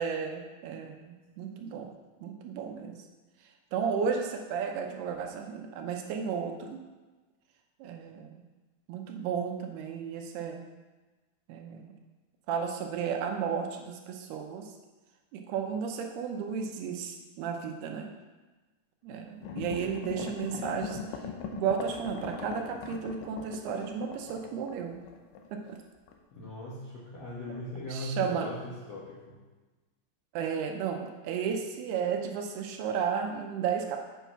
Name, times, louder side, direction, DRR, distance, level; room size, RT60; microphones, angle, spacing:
voice 1, 0.0-1.9 2.2-3.0 3.7-6.8 7.8-8.3 8.9-10.6 11.5-11.9 12.5-14.7 15.3-18.1 19.0-21.2 21.5-25.0 25.5-25.8 27.9-28.5 30.3-34.0, right 7 dB, 80° right, 3 dB, 2.6 m, -33 dB
sound 1, 19.4-25.7 26.1-26.2, left 6 dB, 85° left, 1.9 m, -40 dB
voice 2, 26.3-29.4, left 1 dB, 65° left, -6 dB, 1.6 m, -39 dB
8.2 x 5.8 x 5.8 m, 1.2 s
omnidirectional pair, 4.8 m